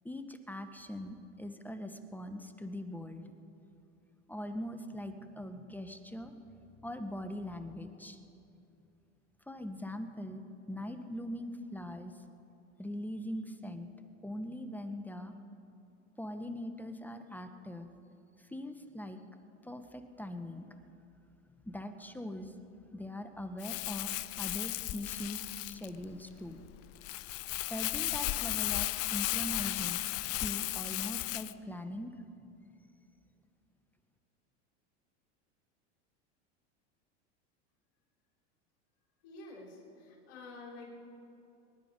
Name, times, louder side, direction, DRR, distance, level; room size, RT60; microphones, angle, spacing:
voice 1, 0.0-3.3 4.3-6.3 6.8-8.2 9.5-12.1 12.8-13.9 14.2-15.3 16.2-17.9 18.4-19.2 19.6-20.7 21.6-22.5 22.9-24.1 24.4-26.6 27.7-30.0 30.4-32.1, left 1 dB, 5° left, 8 dB, 0.9 m, -41 dB
Crumpling crinkling, 23.6-31.5, left 18 dB, 40° left, 0.5 m, -35 dB
voice 2, 39.2-40.9, left 2 dB, 70° left, -3 dB, 4.3 m, -49 dB
24.0 x 11.5 x 5.1 m, 2.8 s
hypercardioid pair, 105°, 36 cm